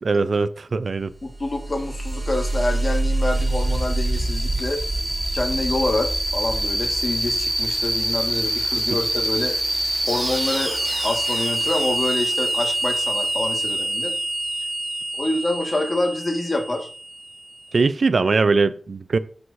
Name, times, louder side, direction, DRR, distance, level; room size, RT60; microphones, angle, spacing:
voice 1, 0.0-1.1 17.7-19.2, right 4 dB, 70° right, 0.4 m, -21 dB
voice 2, 1.2-4.8 5.3-9.8 10.1-10.7 11.0-14.1 15.2-16.9, left 2 dB, 45° left, 1.5 m, -26 dB
sound 1, 1.3-17.6, right 1 dB, 25° right, 3.0 m, -25 dB
12.5 x 4.7 x 2.6 m
cardioid pair, 45°, 0 cm